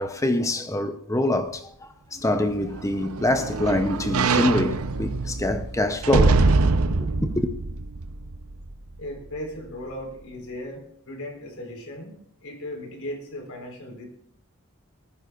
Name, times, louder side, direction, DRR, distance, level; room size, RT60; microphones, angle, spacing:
voice 1, 0.0-1.6 2.1-6.4 7.0-7.5, left 1 dB, 15° left, 0.7 m, -25 dB
sound 1, 2.5-8.7 9.2-9.3, right 3 dB, 80° right, 0.8 m, -24 dB
voice 2, 9.0-14.1, left 1 dB, 75° left, 4.4 m, -37 dB
19.0 x 15.5 x 2.5 m
head